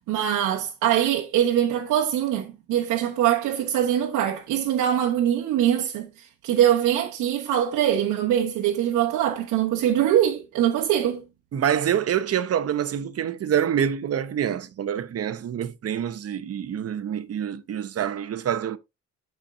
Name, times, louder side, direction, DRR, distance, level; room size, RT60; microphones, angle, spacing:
voice 1, 0.0-11.2, right 10 dB, 85° right, 1.1 m, -23 dB
voice 2, 11.5-18.8, right 9 dB, 55° right, 0.9 m, -26 dB
13.0 x 4.4 x 2.6 m
cardioid pair, 90°, 30 cm